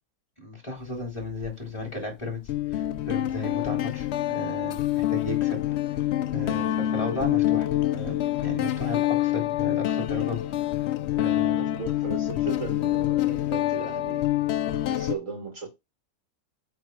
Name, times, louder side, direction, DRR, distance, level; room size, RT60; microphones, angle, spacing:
voice 1, 0.4-2.4 2.7-5.6 6.3-7.7 7.9-10.4 11.2-11.6, left 2 dB, 20° left, 3.1 m, -34 dB
Guitar, 1.2-1.5 2.5-15.1, left 13 dB, 75° left, 0.6 m, -26 dB
voice 2, 11.5-14.3 14.9-15.7, right 4 dB, 55° right, 2.3 m, -36 dB
8.4 x 3.4 x 4.6 m
omnidirectional pair, 1.6 m